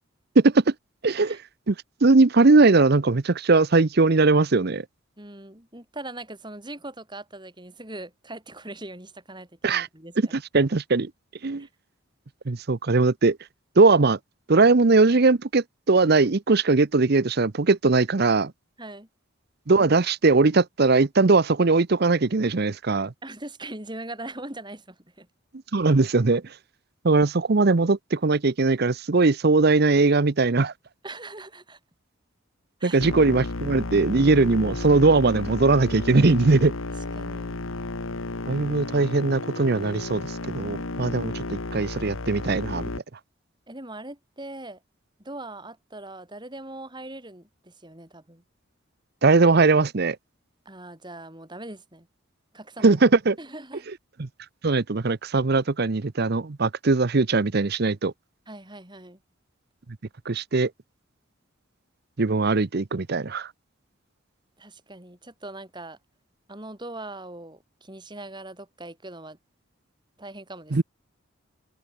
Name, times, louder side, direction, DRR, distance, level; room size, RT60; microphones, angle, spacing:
voice 1, 1.0-1.4 1.7-1.8 2.0-4.8 9.6-9.9 10.5-11.1 11.4-11.7 12.5-13.4 13.8-14.2 14.5-18.5 19.7-23.1 25.7-26.4 27.0-30.7 32.8-36.7 38.5-40.2 40.5-42.9 49.2-50.2 52.8-53.4 54.2-54.3 54.6-58.1 60.3-60.7 62.2-63.5 70.7-70.8, right 3 dB, 50° right, 0.7 m, -20 dB
voice 2, 5.2-10.4 11.6-11.7 18.8-19.1 23.2-25.3 31.0-31.8 32.8-33.1 37.0-37.6 43.7-44.8 45.2-48.4 50.7-52.1 52.5-53.0 53.4-53.8 58.5-59.2 64.6-66.0 66.5-69.4 70.2-70.8, right 2 dB, 20° right, 7.0 m, -41 dB
sound 1, 33.0-43.0, left 2 dB, 90° left, 1.5 m, -33 dB
head